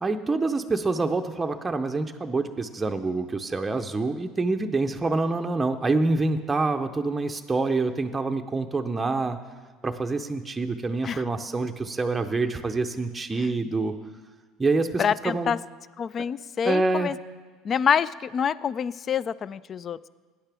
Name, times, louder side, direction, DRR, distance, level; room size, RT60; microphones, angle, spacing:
voice 1, 0.0-9.4 9.8-13.9 14.6-15.5 16.7-17.1, right 3 dB, 15° right, 5 dB, 0.6 m, -26 dB
voice 2, 15.0-15.6 16.0-17.2 17.6-20.1, left 7 dB, 35° left, 19 dB, 0.3 m, -26 dB
17.5 x 9.9 x 3.5 m, 1.4 s
supercardioid pair, 115°, 0 cm